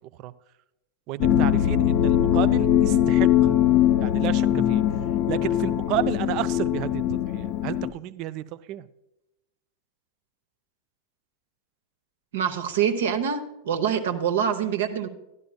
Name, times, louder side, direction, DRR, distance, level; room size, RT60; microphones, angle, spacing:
voice 1, 1.1-3.5 4.0-4.8 5.3-7.0 7.3-8.9, right 14 dB, 40° right, 16 dB, 0.4 m, -31 dB
sound 1, 1.2-7.9, left 11 dB, 45° left, 0.5 m, -21 dB
voice 2, 12.3-15.1, right 8 dB, 60° right, 9 dB, 0.9 m, -25 dB
12.0 x 12.0 x 2.3 m, 0.92 s
figure-of-eight pair, 90°, 0 cm